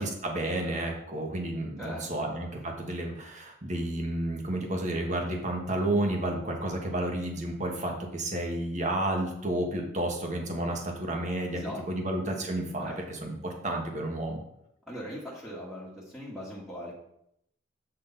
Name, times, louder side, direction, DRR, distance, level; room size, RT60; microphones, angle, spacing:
voice 1, 0.0-14.4, right 1 dB, 40° right, 1 dB, 1.6 m, -31 dB
voice 2, 1.8-2.3 11.5-11.8 12.8-13.0 14.9-16.9, left 1 dB, ahead, -6 dB, 1.7 m, -40 dB
7.8 x 6.5 x 4.1 m, 0.77 s
head